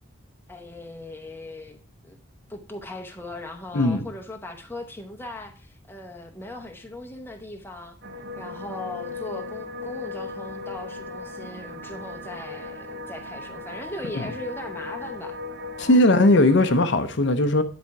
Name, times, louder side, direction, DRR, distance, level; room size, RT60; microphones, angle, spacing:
voice 1, 0.5-1.8 2.0-2.2 2.5-8.0 8.4-15.4 15.8-16.1, left 2 dB, 10° left, 0.8 m, -39 dB
sound 1, 8.0-16.8, left 3 dB, 50° right, 0.8 m, -37 dB
voice 2, 15.8-17.6, left 1 dB, 55° left, 0.7 m, -18 dB
10.0 x 4.3 x 4.6 m
head